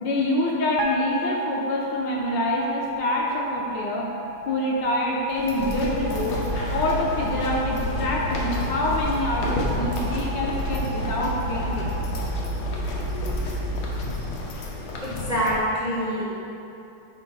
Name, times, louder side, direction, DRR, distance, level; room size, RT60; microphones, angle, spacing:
voice 1, 0.0-4.1 4.5-6.4 6.7-12.0, left 1 dB, 70° left, -2 dB, 1.1 m, -26 dB
sound 1, 0.8-13.1, right 1 dB, 80° right, 0.9 m, -35 dB
sound 2, 5.3-15.6, left 2 dB, 90° left, 1.7 m, -32 dB
sound 3, 5.5-14.1, right 1 dB, 60° right, 1.7 m, -30 dB
voice 2, 15.0-16.2, equal, 45° right, -7 dB, 0.5 m, -25 dB
5.7 x 4.0 x 5.2 m, 2.9 s
omnidirectional pair, 2.3 m